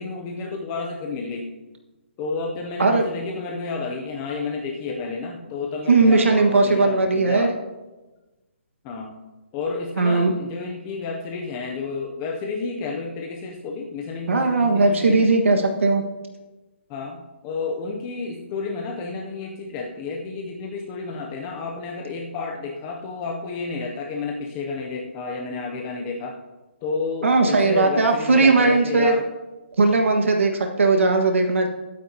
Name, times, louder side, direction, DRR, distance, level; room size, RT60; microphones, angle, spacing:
voice 1, 0.0-1.5 2.2-7.5 8.8-9.2 9.5-15.3 16.9-17.2 17.4-26.3 26.8-29.3, left 4 dB, 10° left, 1 dB, 0.4 m, -31 dB
voice 2, 5.9-7.5 10.0-10.3 14.3-16.0 27.2-29.1 29.8-31.7, right 3 dB, 90° right, 3 dB, 1.4 m, -18 dB
21.0 x 9.4 x 2.7 m, 1.1 s
hypercardioid pair, 180°, 7 cm